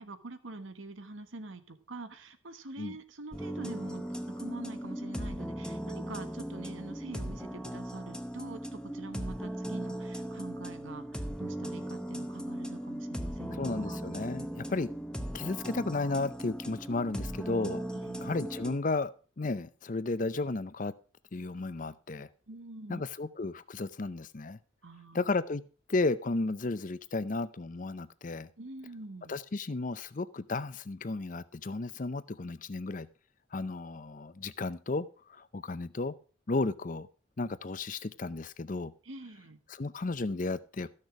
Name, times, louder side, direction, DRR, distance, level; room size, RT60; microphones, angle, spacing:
voice 1, 0.0-4.0 4.4-14.0 17.9-18.4 22.5-23.0 24.8-25.2 28.6-29.3 39.0-39.6, right 2 dB, 80° right, 10 dB, 1.2 m, -45 dB
sound 1, 3.3-18.8, equal, 5° left, 0.8 m, -38 dB
voice 2, 13.6-14.9 15.3-20.9 21.3-22.3 22.9-24.6 25.1-28.5 29.3-33.1 33.5-36.1 36.5-37.1 37.4-38.9 39.7-40.9, left 3 dB, 40° left, 15 dB, 0.6 m, -34 dB
14.0 x 6.6 x 4.7 m, 0.38 s
head